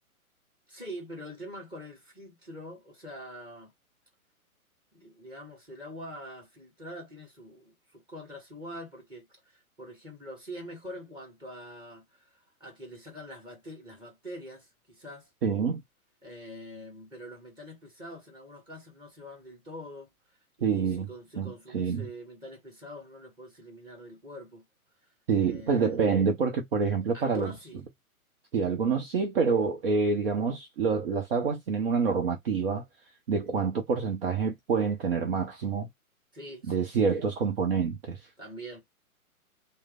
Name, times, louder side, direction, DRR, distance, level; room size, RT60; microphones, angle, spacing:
voice 1, 0.7-3.7 4.9-15.3 16.2-20.1 20.6-24.7 25.4-26.0 27.1-27.8 30.1-30.2 36.3-37.1 38.4-38.8, equal, 10° right, 1.7 m, -44 dB
voice 2, 15.4-15.8 20.6-21.1 21.4-22.1 25.3-27.5 28.5-32.8 33.3-35.9 36.7-38.2, right 5 dB, 40° right, 0.7 m, -27 dB
3.2 x 2.1 x 3.6 m
figure-of-eight pair, 125°, 44 cm